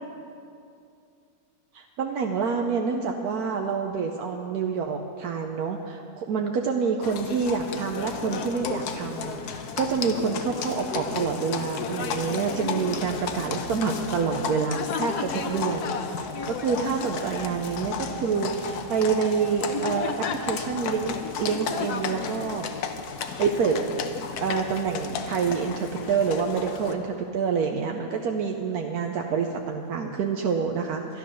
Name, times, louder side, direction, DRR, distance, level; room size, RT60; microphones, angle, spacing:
voice 1, 1.7-16.0 16.5-22.7 23.4-23.8 24.4-31.2, right 5 dB, 75° right, 3 dB, 1.2 m, -27 dB
Livestock farm animals working animals, 7.0-26.9, left 6 dB, 85° left, 1.3 m, -33 dB
sound 1, 14.8-21.9, right 6 dB, 60° right, 2.0 m, -44 dB
11.5 x 11.5 x 6.2 m, 2.5 s
omnidirectional pair, 1.6 m